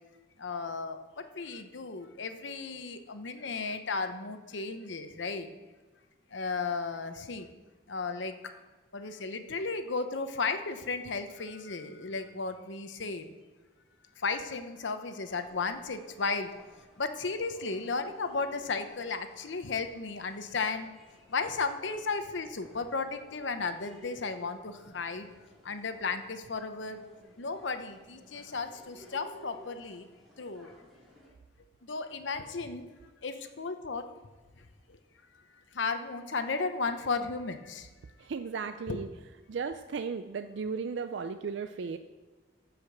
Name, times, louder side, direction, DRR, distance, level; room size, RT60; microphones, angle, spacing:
voice 1, 0.4-5.5 6.3-7.5 7.9-8.6 8.9-13.3 14.2-16.5 17.0-20.9 21.3-25.3 25.6-27.0 27.4-30.1 30.4-30.7 31.8-32.9 33.2-34.0 34.6-34.7 35.7-37.9 38.9-39.0, left 4 dB, 75° left, 8 dB, 0.8 m, -34 dB
sound 1, 15.3-31.3, equal, ahead, 2.6 m, -56 dB
voice 2, 38.3-39.1 39.5-42.0, right 5 dB, 70° right, 8 dB, 0.4 m, -35 dB
14.5 x 5.1 x 6.0 m, 1.3 s
head